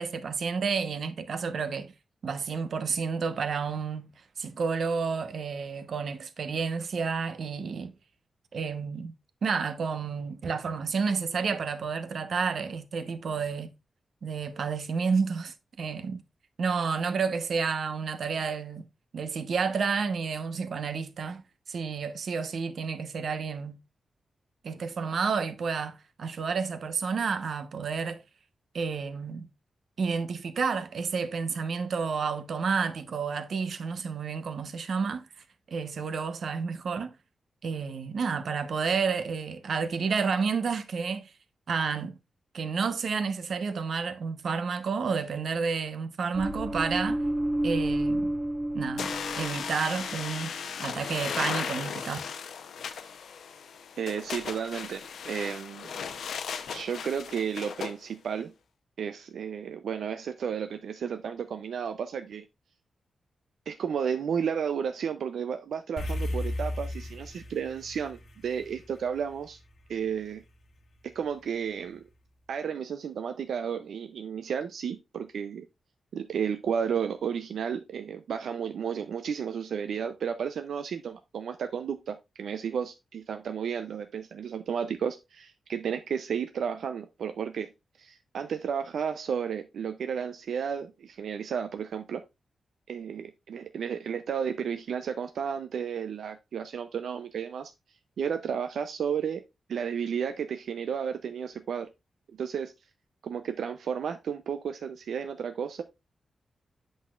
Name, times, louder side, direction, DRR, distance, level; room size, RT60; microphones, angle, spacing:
voice 1, 0.0-1.9 2.2-4.1 4.4-7.9 8.5-9.1 9.4-13.7 14.2-16.2 16.6-18.8 19.1-21.4 21.7-23.8 24.6-28.2 28.7-29.5 30.0-35.3 35.7-37.1 37.6-41.3 41.7-42.2 42.5-47.2 47.6-48.3 48.7-52.2, right 5 dB, 65° right, 0.8 m, -30 dB
sound 1, 46.3-49.8 50.1-50.4, right 1 dB, 20° right, 1.2 m, -30 dB
sound 2, 49.0-57.9, left 6 dB, 90° left, 0.7 m, -36 dB
voice 2, 54.0-55.9 56.7-58.5 59.0-62.5 63.7-69.6 69.9-70.4 71.1-72.0 72.5-75.6 76.1-87.7 88.0-92.2 92.9-97.7 98.2-99.4 99.7-101.9 102.4-102.7 103.2-105.8, right 7 dB, 90° right, 0.5 m, -32 dB
sound 3, 66.0-70.5, left 1 dB, 60° left, 1.2 m, -36 dB
8.1 x 6.3 x 2.4 m
wide cardioid pair, 130°, 0 cm